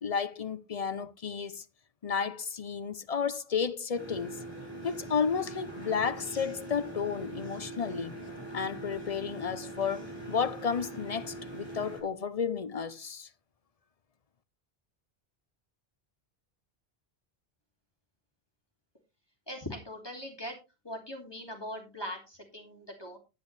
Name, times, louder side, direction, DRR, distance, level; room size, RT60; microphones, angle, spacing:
voice 1, 0.0-1.6 2.0-4.4 4.8-8.2 8.5-13.3, left 6 dB, 40° left, 0.8 m, -32 dB
sound 1, 3.9-12.0, right 2 dB, 25° right, 6.4 m, -42 dB
voice 2, 19.5-20.6 20.8-23.2, equal, 25° left, 2.7 m, -41 dB
10.0 x 10.0 x 3.3 m
omnidirectional pair, 1.0 m